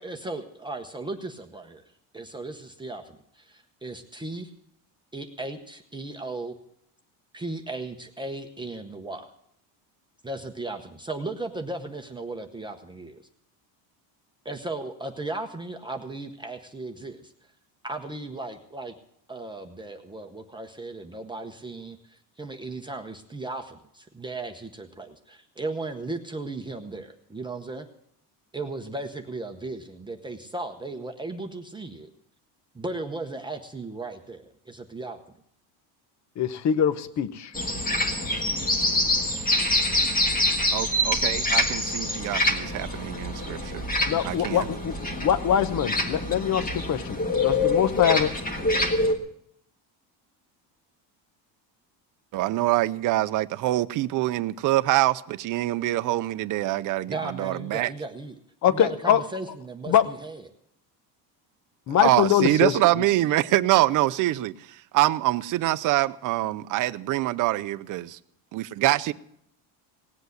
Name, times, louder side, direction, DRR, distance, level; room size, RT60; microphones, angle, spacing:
voice 1, 0.0-1.8 2.1-4.5 5.1-6.5 7.3-9.3 10.2-13.2 14.4-17.3 17.8-19.0 19.3-27.9 28.5-32.1 32.7-35.2 57.1-58.4 58.7-60.5, right 2 dB, 10° right, 0.9 m, -36 dB
voice 2, 36.4-37.5 44.1-48.3 58.6-59.2 59.9-60.0 61.9-63.0, left 9 dB, 40° left, 0.9 m, -23 dB
sound 1, 37.5-49.1, left 2 dB, 20° left, 1.6 m, -25 dB
voice 3, 40.7-43.9 44.2-44.7 52.3-57.9 62.0-68.0 68.5-69.1, right 16 dB, 45° right, 0.6 m, -25 dB
18.0 x 8.1 x 8.0 m
cardioid pair, 145°, 43 cm